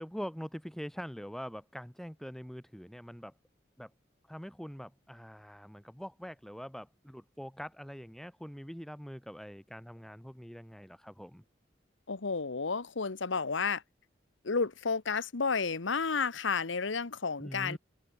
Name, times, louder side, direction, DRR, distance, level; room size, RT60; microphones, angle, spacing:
voice 1, 0.0-3.3 3.8-3.9 4.3-11.4 17.4-17.8, equal, ahead, 1.3 m, -44 dB
voice 2, 12.1-13.8 14.4-17.8, left 5 dB, 90° left, 1.1 m, -31 dB
open air
head